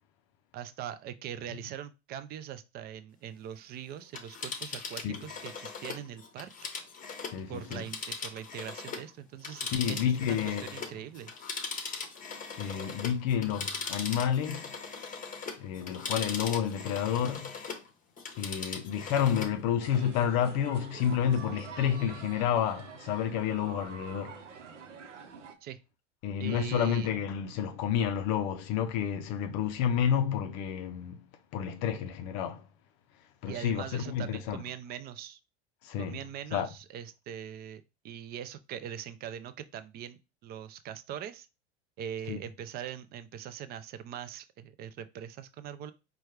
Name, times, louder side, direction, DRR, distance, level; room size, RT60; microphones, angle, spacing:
voice 1, 0.5-6.5 7.5-11.3 25.6-25.8 26.4-27.1 33.5-35.4 36.0-41.5 42.0-45.9, right 10 dB, 30° right, 0.4 m, -42 dB
Telephone, 4.0-9.1 9.4-17.9 18.2-19.6 19.9-20.0, left 5 dB, 25° left, 0.9 m, -40 dB
voice 2, 7.3-7.8 9.7-10.7 12.6-14.7 15.6-17.5 18.3-24.4 26.2-31.2 31.5-32.6 33.4-34.6 35.8-36.2 36.5-36.7 42.3-42.4, left 8 dB, 45° left, 0.5 m, -30 dB
sound 1, 19.8-25.5, right 7 dB, 90° right, 0.7 m, -47 dB
4.2 x 2.2 x 3.2 m
hypercardioid pair, 90°, 35 cm